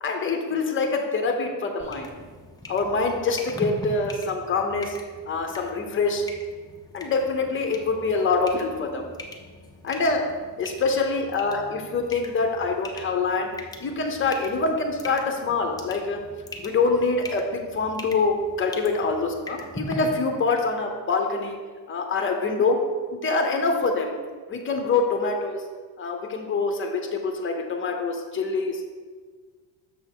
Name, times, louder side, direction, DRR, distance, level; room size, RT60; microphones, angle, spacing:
voice 1, 0.0-2.1 2.7-5.0 5.3-6.2 6.9-9.1 9.8-10.3 10.6-13.5 13.8-16.2 16.6-21.6 21.9-22.8 23.1-24.1 24.5-25.6 26.0-28.8, left 4 dB, 25° left, 3 dB, 0.7 m, -25 dB
sound 1, 1.8-19.9, left 1 dB, 10° left, 0.3 m, -41 dB
6.8 x 3.4 x 6.1 m, 1.5 s
cardioid pair, 160°, 45 cm